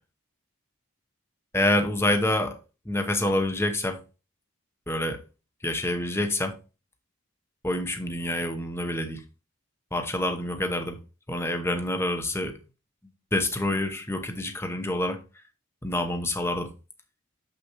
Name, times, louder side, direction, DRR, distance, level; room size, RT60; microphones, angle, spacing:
voice 1, 1.5-2.6 2.8-4.0 4.9-5.2 5.6-6.5 7.6-9.2 9.9-11.0 11.3-12.6 13.3-15.2 15.8-16.7, left 1 dB, 10° left, 0.9 m, -27 dB
6.9 x 6.3 x 3.0 m
head